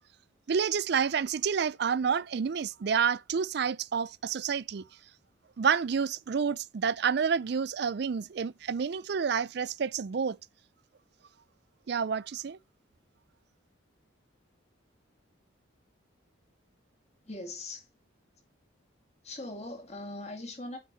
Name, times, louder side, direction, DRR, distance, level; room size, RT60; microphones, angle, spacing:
voice 1, 0.5-4.8 5.6-10.4 11.9-12.6, right 6 dB, 55° right, 0.4 m, -29 dB
voice 2, 17.2-17.9 19.2-20.8, left 2 dB, 35° left, 2.1 m, -40 dB
8.5 x 4.4 x 4.0 m
head